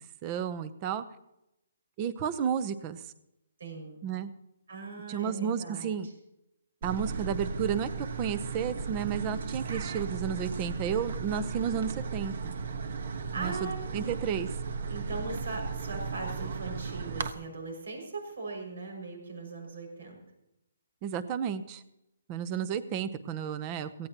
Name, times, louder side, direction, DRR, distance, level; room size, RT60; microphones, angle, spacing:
voice 1, 0.2-1.0 2.0-3.0 4.0-4.3 5.1-6.1 6.8-7.9 8.2-12.5 13.4-14.5 21.0-21.8 22.3-24.1, right 8 dB, 20° right, 15 dB, 0.7 m, -32 dB
voice 2, 3.6-4.0 4.7-5.9 11.8-12.1 13.3-13.8 14.8-20.2, right 3 dB, 80° right, 3 dB, 6.1 m, -39 dB
sound 1, 6.8-17.3, right 5 dB, 55° right, 1.2 m, -35 dB
18.0 x 16.5 x 3.0 m, 0.85 s
hypercardioid pair, 170°, 0 cm